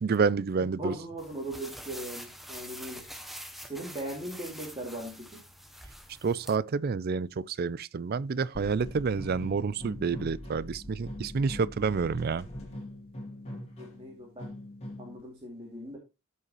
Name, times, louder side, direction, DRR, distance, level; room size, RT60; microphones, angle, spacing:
voice 1, 0.0-0.9 6.2-12.4, right 5 dB, 45° right, 0.4 m, -29 dB
voice 2, 0.6-3.1 3.6-5.4 13.8-14.5 15.0-16.0, right 1 dB, 25° right, 2.5 m, -39 dB
sound 1, 1.2-6.6, equal, ahead, 0.8 m, -45 dB
sound 2, 8.5-15.2, left 1 dB, 30° left, 2.5 m, -42 dB
13.5 x 5.5 x 3.0 m
head